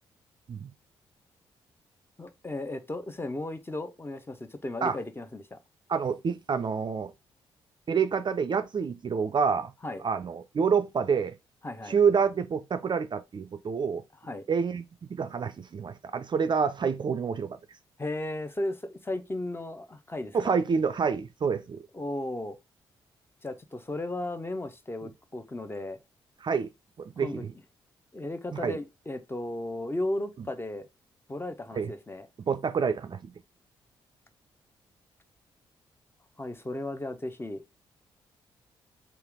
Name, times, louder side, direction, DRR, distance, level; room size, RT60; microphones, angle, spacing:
voice 1, 2.2-5.6 9.8-10.0 11.6-12.0 14.2-14.4 18.0-20.6 21.9-22.6 23.4-26.0 27.2-27.4 28.1-30.9 31.3-32.3 36.4-37.6, left 1 dB, 20° left, 0.7 m, -35 dB
voice 2, 5.9-7.1 7.9-9.7 10.0-11.4 11.9-14.0 14.5-14.8 15.1-17.6 20.3-21.8 26.4-26.7 27.0-27.5 28.5-28.8 31.7-31.9 32.5-33.3, right 6 dB, 40° right, 0.4 m, -27 dB
3.3 x 3.0 x 3.5 m
hypercardioid pair, 40°, 12 cm